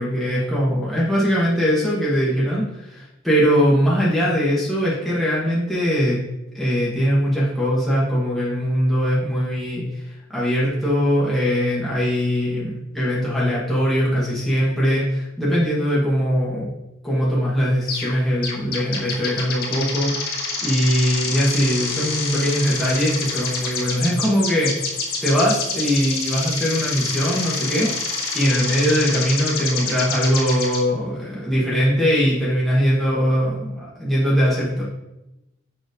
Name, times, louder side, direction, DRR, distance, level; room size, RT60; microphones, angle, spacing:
voice 1, 0.0-6.2 6.5-10.0 10.3-16.7 17.0-24.9 25.2-34.8, equal, ahead, -8 dB, 1.3 m, -21 dB
sound 1, 17.9-18.1 18.4-30.8, left 4 dB, 50° left, 1.2 m, -27 dB
6.7 x 2.9 x 5.0 m, 0.93 s
head